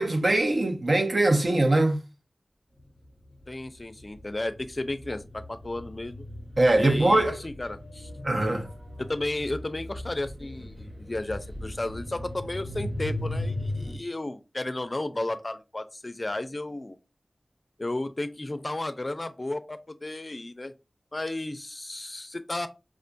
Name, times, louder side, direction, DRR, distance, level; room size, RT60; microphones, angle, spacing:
voice 1, 0.0-2.0 6.6-7.4 8.2-8.7, right 2 dB, 70° right, 0.6 m, -22 dB
sound 1, 2.8-2.9 3.2-14.0, left 1 dB, 85° right, 1.4 m, -37 dB
voice 2, 3.5-6.3 6.8-8.1 9.0-17.0 17.8-20.7 21.1-22.7, left 2 dB, 40° left, 0.4 m, -33 dB
4.7 x 2.2 x 2.5 m
wide cardioid pair, 55°, 0 cm